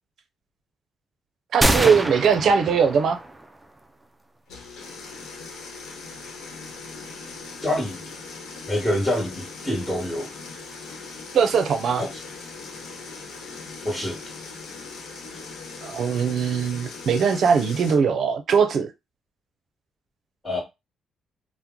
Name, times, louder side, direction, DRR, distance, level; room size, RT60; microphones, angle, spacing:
voice 1, 1.5-3.2 11.3-12.0 15.8-18.9, right 6 dB, 65° right, 0.6 m, -20 dB
sound 1, 1.6-3.5, right 1 dB, 10° right, 0.4 m, -25 dB
sound 2, 4.5-18.0, left 4 dB, 85° left, 0.8 m, -39 dB
voice 2, 7.6-8.0 8.7-10.3 12.0-12.2 13.8-14.2 20.4-20.6, left 1 dB, 10° left, 1.3 m, -26 dB
2.9 x 2.0 x 3.7 m
cardioid pair, 90°, 0 cm